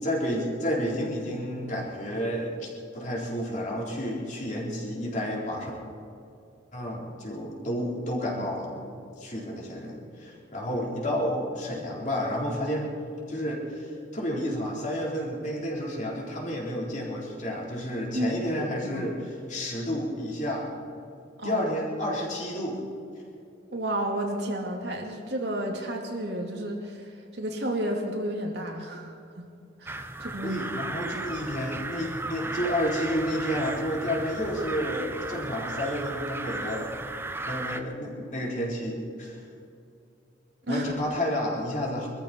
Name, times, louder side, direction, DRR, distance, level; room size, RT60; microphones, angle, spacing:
voice 1, 0.0-5.7 6.7-12.9 13.3-20.7 21.4-22.8 30.4-37.0 37.5-39.4 40.7-42.1, equal, 40° left, -3 dB, 4.1 m, -31 dB
voice 2, 18.1-19.1 21.4-21.6 23.7-29.5 29.8-30.6 40.7-40.9, right 1 dB, 65° right, 1 dB, 2.5 m, -32 dB
sound 1, 29.9-37.8, right 2 dB, 10° right, 0.7 m, -35 dB
23.0 x 14.0 x 4.5 m, 2.6 s
head